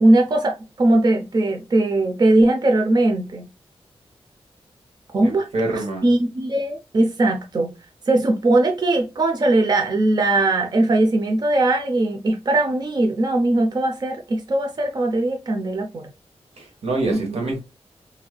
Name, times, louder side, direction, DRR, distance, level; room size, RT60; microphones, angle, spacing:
voice 1, 0.0-3.5 5.1-7.7 8.1-16.1 17.1-17.5, right 2 dB, 40° right, 0.5 m, -20 dB
voice 2, 5.2-6.1 16.6-17.6, right 2 dB, 90° right, 1.2 m, -26 dB
3.0 x 2.8 x 2.2 m
wide cardioid pair, 120°, 10 cm